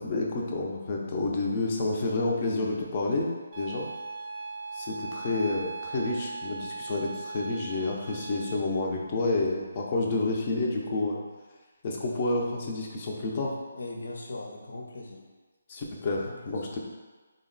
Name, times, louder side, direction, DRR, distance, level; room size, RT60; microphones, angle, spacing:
voice 1, 0.0-3.3 3.6-3.9 4.7-11.2 11.8-13.6 15.7-16.8, left 2 dB, 30° left, -1 dB, 0.5 m, -29 dB
sound 1, 3.5-8.6, right 4 dB, 35° right, 0.5 m, -39 dB
voice 2, 13.7-15.2 16.0-16.6, left 2 dB, 75° left, 0 dB, 0.7 m, -40 dB
3.9 x 2.1 x 3.8 m, 1.3 s
hypercardioid pair, 165°, 0 cm